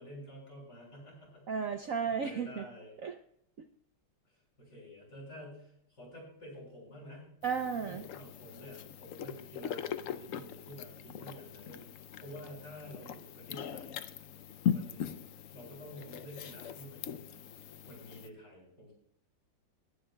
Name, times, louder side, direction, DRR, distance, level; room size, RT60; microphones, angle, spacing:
voice 1, 0.0-1.5 2.1-2.9 4.3-7.4 7.8-11.9 12.2-14.0 14.7-17.5 17.8-18.9, equal, 55° left, -2 dB, 7.0 m, -50 dB
voice 2, 1.5-2.6 3.0-3.1 7.4-8.1, right 6 dB, 60° right, 6 dB, 0.9 m, -33 dB
sound 1, 7.4-18.3, left 9 dB, 80° left, 0.7 m, -40 dB
22.0 x 11.0 x 2.3 m, 0.70 s
omnidirectional pair, 2.0 m